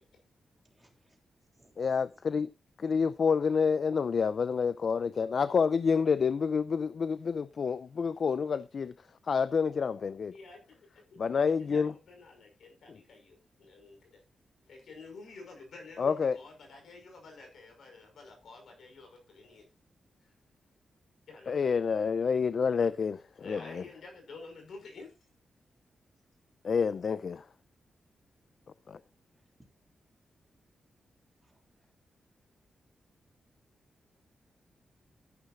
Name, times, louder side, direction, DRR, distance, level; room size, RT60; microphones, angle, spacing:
voice 1, 0.6-1.2 1.5-2.2 29.6-29.7 31.4-31.9, right 1 dB, 10° right, 3.1 m, -65 dB
voice 2, 1.8-2.5 2.8-10.4 11.2-11.9 12.9-13.0 16.0-16.4 21.5-23.9 26.6-27.5 28.9-29.0, left 5 dB, 50° left, 0.4 m, -28 dB
voice 3, 10.3-11.2 11.7-14.2 14.7-19.7 20.2-20.3 21.3-21.6 22.8-22.9 23.4-25.1, left 3 dB, 75° left, 5.6 m, -50 dB
13.0 x 11.5 x 2.5 m
wide cardioid pair, 145°, 0 cm